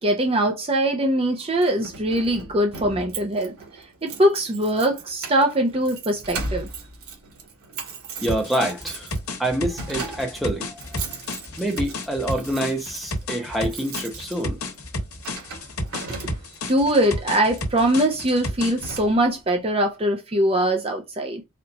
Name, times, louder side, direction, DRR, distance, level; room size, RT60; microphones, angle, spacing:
voice 1, 0.0-6.7 16.7-21.4, right 1 dB, 25° right, 0.5 m, -22 dB
Keys jangling, 1.4-16.7 17.5-17.8 18.2-18.3 18.6-19.5, right 4 dB, 85° right, 1.7 m, -38 dB
voice 2, 8.2-9.1 9.4-11.0 11.6-14.6, right 1 dB, ahead, 0.8 m, -26 dB
sound 1, 8.3-18.9, left 1 dB, 85° left, 1.3 m, -32 dB
4.3 x 2.5 x 4.0 m
head